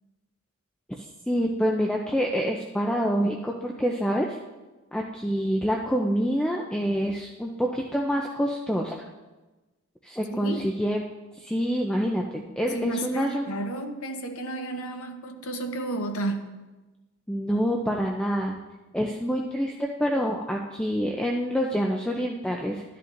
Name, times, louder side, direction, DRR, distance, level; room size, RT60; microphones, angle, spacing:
voice 1, 1.0-4.4 4.9-9.0 10.0-11.0 11.3-13.5 17.3-18.6 18.9-22.8, equal, 5° left, -1 dB, 0.4 m, -27 dB
voice 2, 10.3-10.6 12.7-16.5, right 2 dB, 80° left, 5 dB, 0.9 m, -32 dB
12.0 x 10.5 x 2.6 m, 1.2 s
head